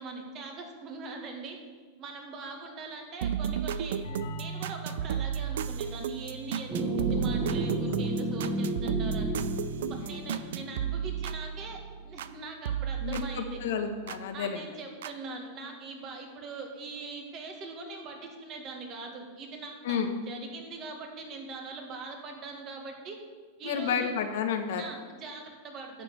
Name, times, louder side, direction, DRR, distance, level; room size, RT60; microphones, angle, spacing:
voice 1, 0.0-1.6 2.0-9.3 9.9-13.6 14.3-23.2 23.6-24.2 24.8-26.0, right 3 dB, 40° right, 2 dB, 2.0 m, -42 dB
sound 1, 3.2-12.4 12.6-14.2 15.0-15.1, right 8 dB, 75° right, 0.5 m, -34 dB
sound 2, 4.0-9.5, right 3 dB, 90° left, 1.5 m, -44 dB
sound 3, 6.7-11.3, right 1 dB, 20° right, 1.9 m, -32 dB
voice 2, 13.0-14.6 19.8-20.1 23.6-24.8, left 7 dB, 70° left, 6 dB, 1.2 m, -31 dB
11.0 x 5.0 x 7.7 m, 1.5 s
hypercardioid pair, 110°, 0 cm